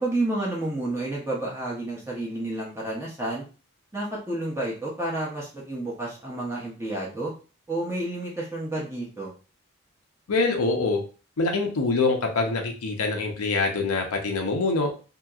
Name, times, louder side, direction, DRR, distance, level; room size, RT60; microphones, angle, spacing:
voice 1, 0.0-3.4 3.9-7.3 7.7-9.3, right 2 dB, 10° right, -5 dB, 0.7 m, -30 dB
voice 2, 10.3-11.0 11.4-14.9, left 3 dB, 90° left, 2 dB, 0.6 m, -24 dB
2.8 x 2.8 x 2.4 m, 0.36 s
head